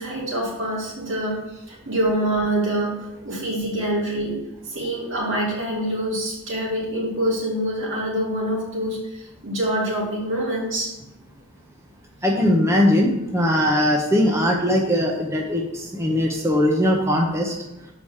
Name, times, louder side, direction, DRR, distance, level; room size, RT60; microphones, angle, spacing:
voice 1, 0.0-10.9, right 1 dB, 55° right, -4 dB, 2.7 m, -26 dB
voice 2, 12.2-17.5, left 1 dB, 10° right, 0 dB, 0.7 m, -20 dB
6.8 x 4.9 x 7.1 m, 0.91 s
head